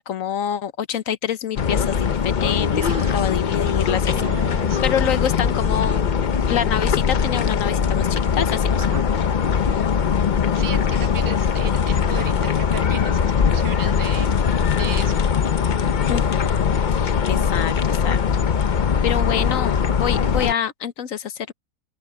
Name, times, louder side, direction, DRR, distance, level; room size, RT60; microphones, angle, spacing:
voice 1, 0.0-4.2 4.5-6.1 6.5-9.3 16.1-18.2 19.0-21.5, left 9 dB, 60° left, 1.1 m, -27 dB
sound 1, 1.6-20.5, left 7 dB, 80° left, 0.4 m, -21 dB
voice 2, 2.8-3.2 4.1-4.8 8.8-9.0 10.5-14.3 14.7-15.3, right 7 dB, 20° right, 0.6 m, -35 dB
open air
omnidirectional pair, 1.8 m